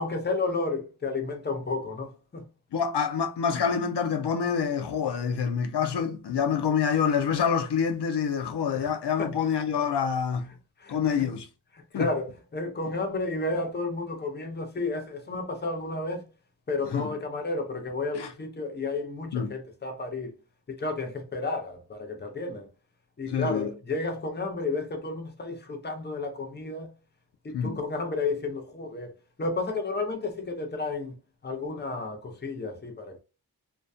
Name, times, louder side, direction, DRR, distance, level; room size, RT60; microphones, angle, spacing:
voice 1, 0.0-2.4 8.7-8.9 9.2-9.3 10.8-11.3 11.7-16.3 16.7-20.3 20.7-22.7 23.2-26.9 27.4-29.1 29.4-31.2 31.4-33.2, left 3 dB, 25° left, 0.6 m, -32 dB
voice 2, 2.7-10.5 10.9-11.5 11.9-12.1 16.9-17.1 18.1-18.3 19.3-19.5 23.3-23.7 27.5-27.8, left 7 dB, 85° left, 0.5 m, -27 dB
2.2 x 2.2 x 2.5 m
wide cardioid pair, 80°, 40 cm